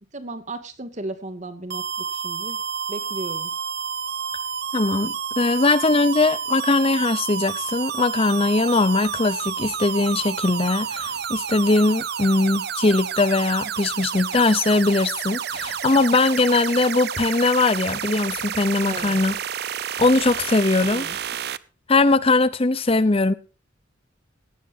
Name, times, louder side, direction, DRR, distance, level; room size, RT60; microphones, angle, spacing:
voice 1, 0.1-1.8 2.1-2.6 2.9-3.5 18.9-19.2 20.8-21.2, right 2 dB, 40° right, 2.4 m, -35 dB
sound 1, 1.7-21.6, right 7 dB, 55° right, 0.8 m, -30 dB
voice 2, 4.7-19.3 20.0-21.2 21.9-23.3, left 3 dB, 30° left, 0.7 m, -20 dB
18.0 x 16.0 x 2.8 m
head